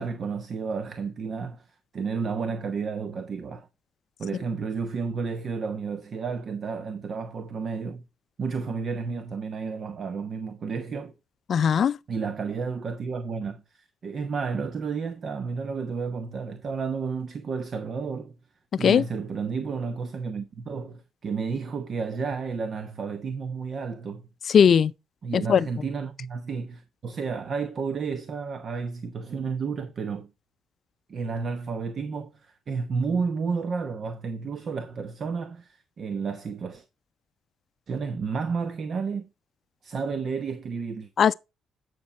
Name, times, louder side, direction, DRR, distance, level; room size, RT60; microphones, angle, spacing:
voice 1, 0.0-1.6 1.9-3.7 4.2-8.0 8.4-11.1 12.1-18.3 18.8-24.2 25.2-30.3 31.1-36.8 37.9-39.3 39.8-41.1, right 5 dB, 50° right, 0.9 m, -31 dB
voice 2, 11.5-12.0 18.8-19.0 24.5-24.9 25.3-25.7 41.2-41.3, left 7 dB, 55° left, 0.5 m, -19 dB
9.5 x 6.1 x 4.3 m
cardioid pair, 90°, 0 cm